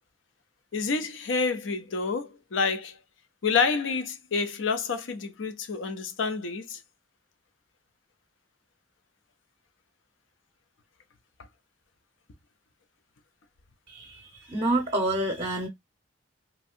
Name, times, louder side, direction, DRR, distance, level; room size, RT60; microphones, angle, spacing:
voice 1, 0.7-3.0 3.4-6.8, left 5 dB, 80° left, 0.6 m, -28 dB
voice 2, 13.9-15.7, right 1 dB, 30° right, 0.7 m, -28 dB
3.1 x 2.6 x 2.4 m
head